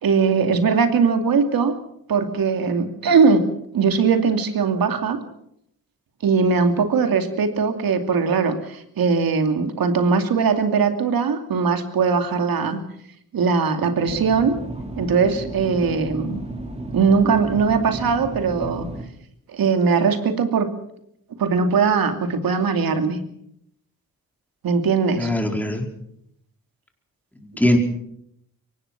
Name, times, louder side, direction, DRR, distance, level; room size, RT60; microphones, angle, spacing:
voice 1, 0.0-1.7 2.1-3.5 3.7-5.2 6.2-12.8 13.3-14.6 15.0-16.4 16.9-18.9 19.5-20.7 21.4-23.2 24.6-25.3, right 5 dB, 75° right, 6 dB, 2.8 m, -20 dB
sound 1, 14.0-19.1, right 2 dB, 20° right, 4.0 m, -33 dB
voice 2, 25.2-25.8 27.4-27.8, left 1 dB, 5° left, 2 dB, 4.6 m, -21 dB
23.5 x 18.5 x 6.1 m, 0.74 s
cardioid pair, 80°, 35 cm